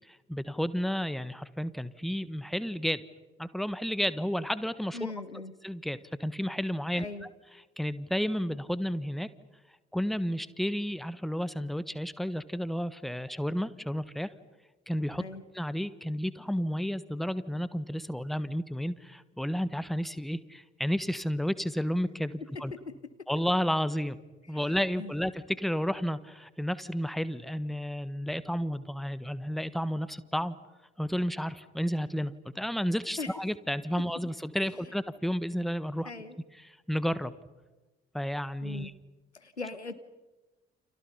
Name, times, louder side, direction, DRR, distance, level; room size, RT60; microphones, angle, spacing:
voice 1, 0.1-3.0 3.4-5.1 5.6-7.3 7.8-9.3 9.9-14.3 14.9-15.2 15.5-22.7 23.3-24.2 24.5-30.6 31.0-36.1 36.6-37.3 38.1-38.9, equal, ahead, 15 dB, 1.4 m, -32 dB
voice 2, 4.9-5.5 6.9-7.3 15.2-15.4 24.5-25.1 33.2-33.3 36.0-36.4 38.6-38.9 39.3-40.0, left 3 dB, 90° left, 12 dB, 1.1 m, -40 dB
29.5 x 28.5 x 5.7 m, 1.1 s
figure-of-eight pair, 45°, 33 cm